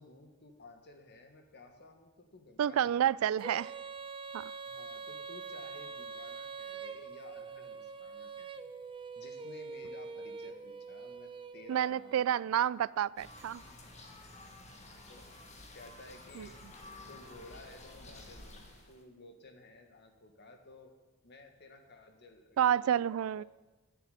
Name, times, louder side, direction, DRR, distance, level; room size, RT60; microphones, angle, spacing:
voice 1, 0.0-3.0 4.6-8.6 9.1-12.6 14.7-15.3 15.7-16.6 17.1-20.9 21.2-23.4, left 2 dB, 55° left, 5 dB, 1.6 m, -55 dB
voice 2, 2.6-3.7 4.3-4.5 11.7-13.6 16.4-16.5 22.6-23.4, right 10 dB, 85° right, 22 dB, 0.3 m, -29 dB
Female singing, 3.4-12.2, right 5 dB, 25° right, 0.6 m, -44 dB
sound 1, 13.2-19.0, left 2 dB, 35° left, 1.6 m, -51 dB
10.0 x 7.7 x 9.0 m, 1.2 s
head